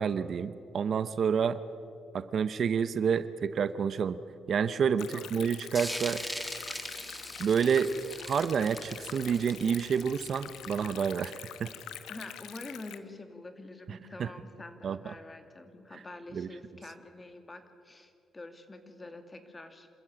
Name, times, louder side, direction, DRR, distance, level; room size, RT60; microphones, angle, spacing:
voice 1, 0.0-1.6 2.1-4.2 4.5-6.2 7.4-7.9 8.3-11.7 13.9-14.3 14.8-15.1 16.3-16.5, right 7 dB, 55° right, 14 dB, 0.8 m, -29 dB
Stream, 5.0-13.0, left 11 dB, 85° left, 1.0 m, -45 dB
voice 2, 5.0-5.3 12.1-19.9, left 2 dB, 20° left, 7 dB, 2.3 m, -46 dB
sound 1, 5.7-11.1, equal, ahead, 2.0 m, -41 dB
27.5 x 13.5 x 8.8 m, 2.4 s
cardioid pair, 90°, 0 cm